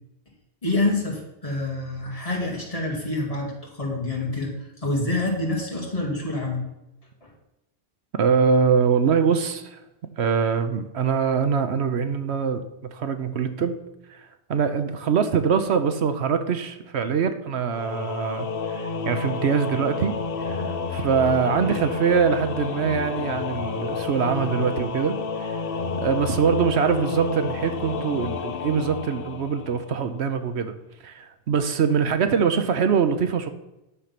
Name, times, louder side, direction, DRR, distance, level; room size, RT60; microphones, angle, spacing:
voice 1, 0.6-6.6 7.2-7.3, left 2 dB, 30° left, -2 dB, 2.4 m, -27 dB
voice 2, 8.1-9.8 10.2-13.8 14.1-14.2 14.5-25.6 26.0-30.7 31.0-33.5, right 6 dB, 80° right, 9 dB, 1.1 m, -23 dB
Singing / Musical instrument, 17.7-30.2, left 5 dB, 60° left, 1.0 m, -30 dB
10.0 x 6.5 x 5.9 m, 0.94 s
omnidirectional pair, 1.1 m